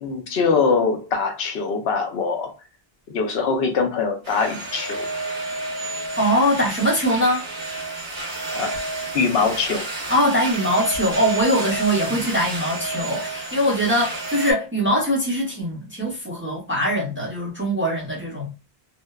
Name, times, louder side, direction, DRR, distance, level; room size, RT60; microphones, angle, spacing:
voice 1, 0.0-2.5 3.1-5.1 8.5-8.7 9.1-9.9 12.1-12.2, left 5 dB, 75° left, 0.8 m, -23 dB
sound 1, 4.2-14.5, right 2 dB, 55° right, 1.0 m, -30 dB
voice 2, 6.2-7.5 10.1-18.5, equal, 15° right, 0.5 m, -22 dB
2.7 x 2.0 x 2.2 m
omnidirectional pair, 1.0 m